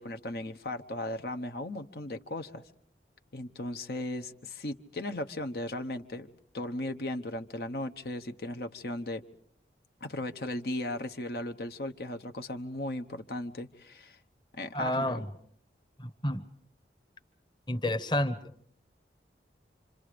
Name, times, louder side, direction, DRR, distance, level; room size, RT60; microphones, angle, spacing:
voice 1, 0.0-2.6 3.3-6.3 6.5-9.2 10.0-14.2 14.5-15.2, left 1 dB, 65° left, 6 dB, 1.0 m, -36 dB
voice 2, 14.7-15.2 16.0-16.4 17.7-18.4, left 1 dB, 25° left, 9 dB, 1.1 m, -29 dB
28.0 x 26.5 x 5.1 m, 0.64 s
head